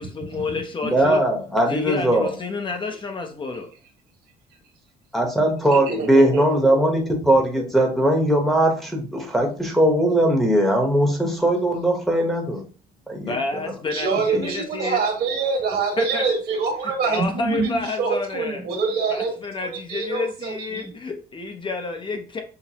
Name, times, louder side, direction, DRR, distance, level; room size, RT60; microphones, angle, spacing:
voice 1, 0.0-1.2 1.7-3.7 13.3-15.0 16.0-16.3 17.0-18.7 19.1-22.4, left 3 dB, 30° left, 5 dB, 0.6 m, -30 dB
voice 2, 0.9-2.3 5.1-12.6 13.1-13.4 14.3-14.5, right 1 dB, ahead, 0 dB, 0.9 m, -20 dB
voice 3, 5.7-6.4 13.9-19.3 19.9-20.9, right 4 dB, 75° right, 2 dB, 1.3 m, -25 dB
5.8 x 2.0 x 2.8 m, 0.39 s
cardioid pair, 110°, 17 cm